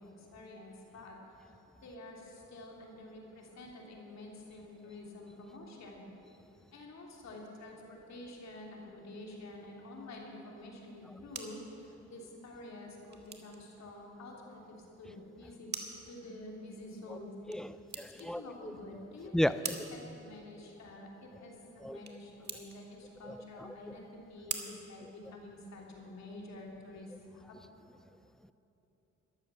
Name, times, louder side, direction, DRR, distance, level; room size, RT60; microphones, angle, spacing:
voice 1, 0.0-1.5 1.8-6.1 6.7-15.7 16.1-17.7 18.2-27.6, left 2 dB, 60° left, -1 dB, 3.1 m, -49 dB
sound 1, 10.9-25.8, right 4 dB, 35° right, 1.6 m, -48 dB
voice 2, 17.5-18.4 19.3-19.7 21.8-22.0 23.2-24.0, left 1 dB, ahead, 14 dB, 0.4 m, -34 dB
13.0 x 12.0 x 7.0 m, 2.9 s
cardioid pair, 90°, 30 cm